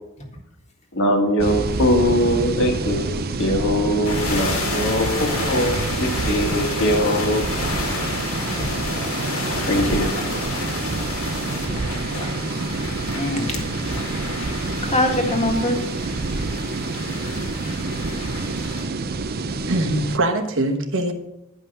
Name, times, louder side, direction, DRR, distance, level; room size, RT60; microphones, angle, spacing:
voice 1, 0.9-7.4 9.7-10.1, equal, 60° left, 1.8 m, -21 dB
sound 1, 1.4-20.2, right 3 dB, 45° right, 0.6 m, -27 dB
sound 2, 4.0-18.9, left 2 dB, 85° left, 2.5 m, -30 dB
voice 2, 9.8-10.1 12.8-13.7 14.8-15.8, left 1 dB, 30° left, 1.8 m, -24 dB
voice 3, 19.7-21.1, right 1 dB, 65° right, 1.2 m, -22 dB
10.0 x 5.6 x 6.7 m
head